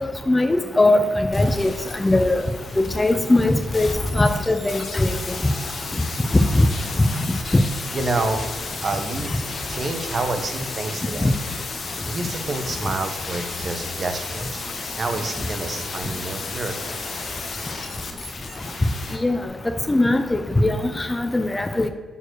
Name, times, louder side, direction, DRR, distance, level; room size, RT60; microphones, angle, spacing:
voice 1, 0.0-1.0 1.3-1.7 2.0-2.4 2.8-3.9 4.1-5.1 6.3-6.7 7.5-7.6 11.2-11.3 19.2-19.4 19.9-21.9, left 2 dB, 20° left, 8 dB, 0.7 m, -19 dB
sound 1, 1.3-19.2 19.5-19.6, left 3 dB, 50° left, 1.3 m, -33 dB
voice 2, 7.9-8.4 8.8-9.3 9.7-11.4 12.0-14.7 14.9-17.1, right 2 dB, 45° right, 6 dB, 1.1 m, -28 dB
6.9 x 4.4 x 6.5 m, 1.5 s
supercardioid pair, 65°, 0 cm